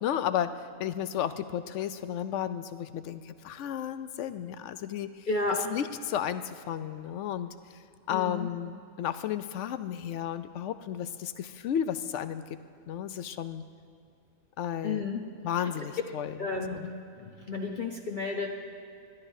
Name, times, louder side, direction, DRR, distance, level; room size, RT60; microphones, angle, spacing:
voice 1, 0.0-0.5 0.8-5.3 5.7-7.5 8.1-12.6 12.9-13.6 14.6-15.0 15.4-16.9, left 10 dB, 70° left, 12 dB, 0.8 m, -33 dB
voice 2, 5.3-5.7 8.1-8.5 14.8-15.2 16.4-16.8 17.2-18.5, left 3 dB, 40° left, 0 dB, 0.9 m, -32 dB
20.5 x 13.0 x 2.7 m, 2.5 s
omnidirectional pair, 1.4 m